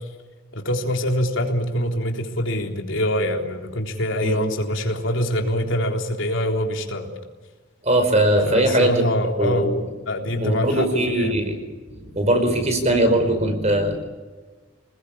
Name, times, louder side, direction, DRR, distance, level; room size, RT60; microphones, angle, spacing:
voice 1, 0.5-7.1 8.4-9.7 10.1-11.4, left 1 dB, 80° left, 2 dB, 3.6 m, -24 dB
voice 2, 7.8-8.9 9.4-9.7 10.4-11.6 11.9-14.0, right 1 dB, 35° right, 6 dB, 5.1 m, -20 dB
26.0 x 20.5 x 8.7 m, 1.3 s
head